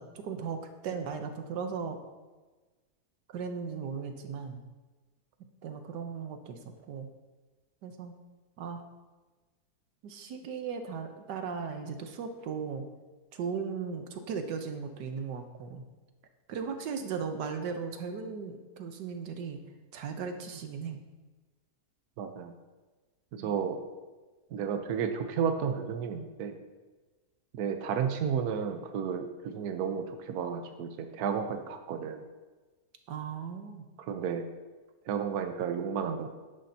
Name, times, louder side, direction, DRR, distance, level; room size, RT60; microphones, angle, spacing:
voice 1, 0.0-2.0 3.3-4.6 5.6-6.6 6.9-7.1 7.8-8.1 8.6-8.8 10.0-12.8 13.3-15.8 16.5-19.6 19.9-21.0 23.4-23.6 33.1-33.9, right 6 dB, 85° right, 6 dB, 1.5 m, -37 dB
voice 2, 22.2-22.5 23.3-23.8 24.5-26.6 27.5-32.2 34.1-34.5 35.1-36.3, right 7 dB, 70° right, 6 dB, 1.3 m, -32 dB
11.0 x 10.5 x 2.8 m, 1.3 s
omnidirectional pair, 1.8 m